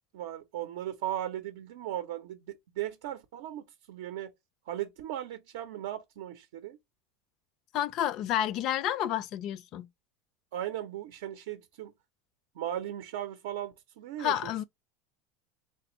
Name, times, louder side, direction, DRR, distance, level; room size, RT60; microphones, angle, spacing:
voice 1, 0.1-4.3 4.7-6.8 10.5-11.9 12.6-14.5, right 12 dB, 80° right, 0.6 m, -37 dB
voice 2, 7.7-9.9 14.2-14.6, left 11 dB, 50° left, 0.3 m, -30 dB
3.3 x 3.3 x 3.0 m
supercardioid pair, 130°, 0 cm